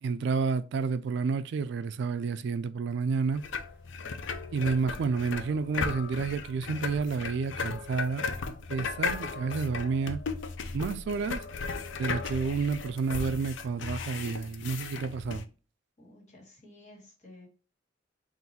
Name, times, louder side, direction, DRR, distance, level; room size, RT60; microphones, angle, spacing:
voice 1, 0.0-3.4 4.5-10.2 10.7-11.4 11.9-15.5, right 5 dB, 65° right, 0.3 m, -30 dB
sound 1, 3.3-15.4, left 4 dB, 80° left, 0.5 m, -36 dB
voice 2, 16.0-17.5, left 1 dB, 40° left, 1.7 m, -53 dB
3.9 x 2.5 x 4.1 m
head